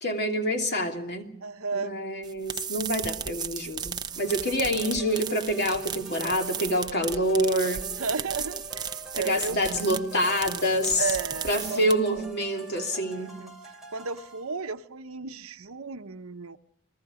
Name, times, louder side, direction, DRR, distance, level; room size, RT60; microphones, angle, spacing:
voice 1, 0.0-1.3 1.7-7.9 9.1-11.1 11.4-13.4, equal, 50° left, 4 dB, 2.9 m, -27 dB
voice 2, 1.4-1.9 8.0-9.6 11.0-12.3 13.1-13.5 13.9-16.6, right 4 dB, 70° right, 10 dB, 1.0 m, -34 dB
sound 1, 2.2-12.2, right 7 dB, 20° right, 0.7 m, -35 dB
sound 2, 4.2-14.5, right 1 dB, ahead, 3.3 m, -45 dB
29.5 x 20.0 x 5.0 m, 0.73 s
head